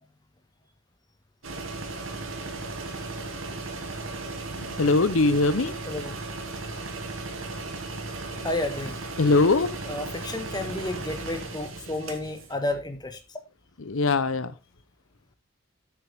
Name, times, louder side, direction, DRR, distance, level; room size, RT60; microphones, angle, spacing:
sound 1, 1.4-12.5, right 3 dB, 70° right, 2.3 m, -36 dB
voice 1, 4.8-5.7 9.2-9.7 13.8-14.5, left 3 dB, 75° left, 0.8 m, -21 dB
voice 2, 5.9-6.2 8.4-9.0 9.9-13.2, left 2 dB, 20° left, 1.5 m, -31 dB
10.5 x 8.1 x 3.5 m
head